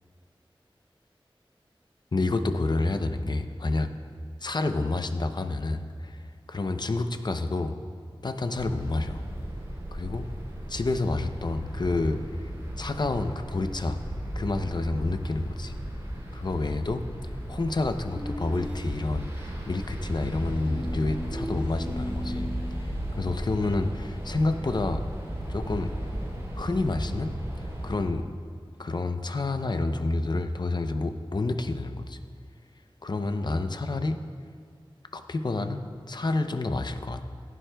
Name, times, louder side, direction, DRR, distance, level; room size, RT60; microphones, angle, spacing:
voice 1, 2.1-3.9 4.4-6.2 6.5-7.8 8.2-9.2 9.9-10.3 10.7-12.2 12.8-14.0 14.4-15.7 16.3-17.0 17.5-22.5 23.2-25.0 25.5-25.9 26.5-27.3 27.8-28.3 28.8-32.2 33.0-34.2 35.1-37.2, left 2 dB, 50° left, 8 dB, 0.6 m, -29 dB
sound 1, 8.6-28.0, right 1 dB, 30° right, 3.1 m, -36 dB
sound 2, 18.1-19.4 20.7-22.9, equal, 10° right, 1.3 m, -37 dB
17.5 x 11.0 x 2.3 m, 2.1 s
wide cardioid pair, 60°, 9 cm